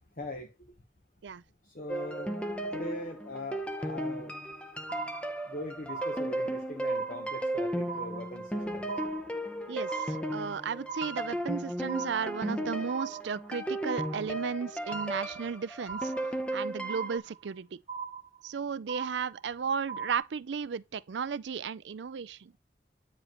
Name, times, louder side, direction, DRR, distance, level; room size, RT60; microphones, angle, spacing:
voice 1, 0.2-0.5 1.7-2.3 2.7-4.3 5.5-8.9, left 1 dB, 45° left, 0.9 m, -41 dB
sound 1, 1.9-17.2, right 1 dB, 5° left, 0.7 m, -35 dB
sound 2, 4.9-5.6 5.9-6.6 6.9-7.6 7.9-8.6 8.9-9.6 9.9-10.6 10.9-11.6 11.9-12.6 12.9-13.6 13.9-14.6 14.9-15.6 15.9-16.6 16.9-17.6 17.9-18.6 18.9-19.6 19.9-20.2, right 6 dB, 35° right, 0.9 m, -40 dB
voice 2, 9.7-16.1 16.5-17.8 18.4-22.5, right 6 dB, 80° right, 0.4 m, -34 dB
9.2 x 4.9 x 3.0 m
head